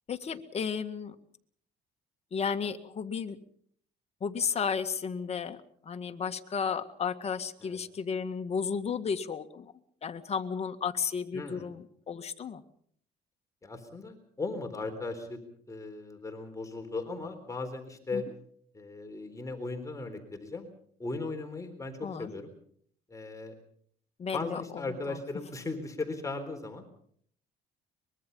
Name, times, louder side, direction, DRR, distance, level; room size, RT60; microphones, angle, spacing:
voice 1, 0.1-1.2 2.3-3.4 4.2-5.6 5.8-9.7 10.0-12.6 18.1-18.3 22.0-22.3 24.2-25.2, left 6 dB, 40° left, 7 dB, 1.9 m, -33 dB
voice 2, 11.3-11.7 13.6-15.4 15.7-18.2 18.7-20.7 21.0-22.5 23.1-23.5 24.3-26.8, left 3 dB, 20° left, 5 dB, 3.9 m, -37 dB
24.0 x 22.0 x 5.5 m, 0.63 s
cardioid pair, 110°, 17 cm